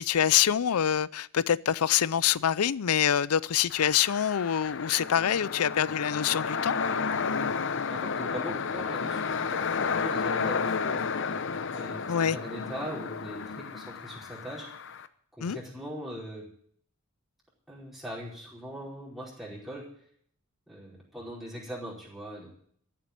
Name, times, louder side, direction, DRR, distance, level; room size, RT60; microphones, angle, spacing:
voice 1, 0.0-6.7 12.1-12.4 15.4-15.6, left 9 dB, 85° left, 0.5 m, -25 dB
sound 1, 3.7-15.1, left 5 dB, 60° left, 0.8 m, -32 dB
voice 2, 7.9-11.0 11.7-14.7 15.3-16.5 17.7-19.8 20.7-22.5, equal, ahead, 4.9 m, -40 dB
14.0 x 7.4 x 9.6 m
head